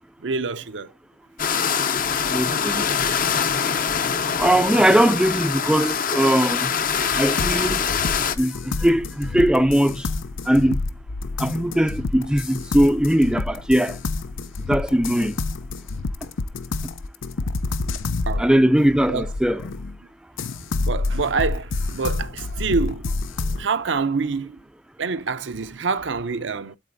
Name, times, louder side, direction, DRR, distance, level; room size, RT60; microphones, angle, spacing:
voice 1, 0.2-0.9 18.3-18.5 19.1-19.2 20.9-23.1 23.6-24.6 25.0-26.8, right 4 dB, 70° right, 0.6 m, -26 dB
sound 1, 1.4-8.3, left 6 dB, 45° left, 0.7 m, -24 dB
voice 2, 2.3-2.9 4.4-6.7 7.2-7.8 8.4-10.1 10.5-10.8 11.4-14.0 14.7-15.3 18.4-19.6, right 1 dB, 5° right, 0.4 m, -20 dB
sound 2, 7.4-20.0 20.4-23.7, left 3 dB, 90° left, 0.6 m, -28 dB
11.5 x 4.2 x 2.6 m
head